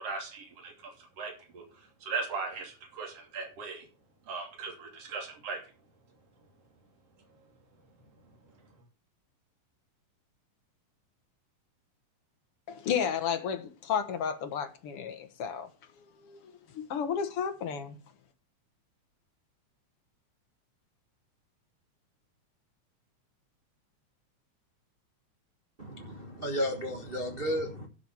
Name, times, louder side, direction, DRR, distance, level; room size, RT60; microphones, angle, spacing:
voice 1, 0.0-1.6 2.0-3.8 4.3-5.6, right 4 dB, 55° right, 3.8 m, -38 dB
voice 2, 12.7-15.7 16.2-18.0, left 7 dB, 55° left, 2.0 m, -32 dB
voice 3, 25.8-27.9, equal, 35° right, 0.9 m, -33 dB
12.0 x 6.0 x 6.1 m
omnidirectional pair, 3.4 m